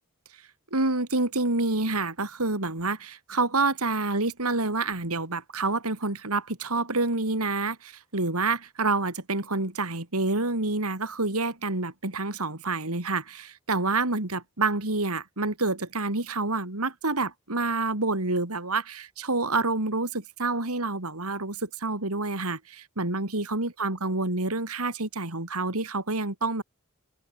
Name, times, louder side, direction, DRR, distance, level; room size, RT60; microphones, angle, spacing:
voice 1, 0.7-26.6, right 3 dB, 75° right, 3.9 m, -28 dB
head